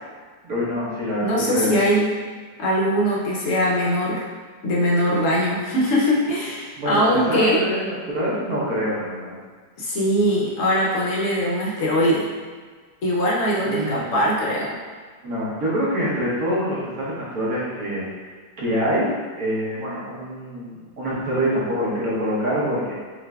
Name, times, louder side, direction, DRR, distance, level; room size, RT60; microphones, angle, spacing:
voice 1, 0.4-1.7 6.8-9.4 13.6-14.1 15.2-18.0 18.6-22.9, equal, 55° right, -7 dB, 1.4 m, -25 dB
voice 2, 1.2-2.1 2.6-4.2 4.6-7.6 9.8-12.3 13.0-14.7, equal, 60° left, -4 dB, 0.9 m, -21 dB
6.1 x 2.6 x 2.3 m, 1.5 s
omnidirectional pair, 2.1 m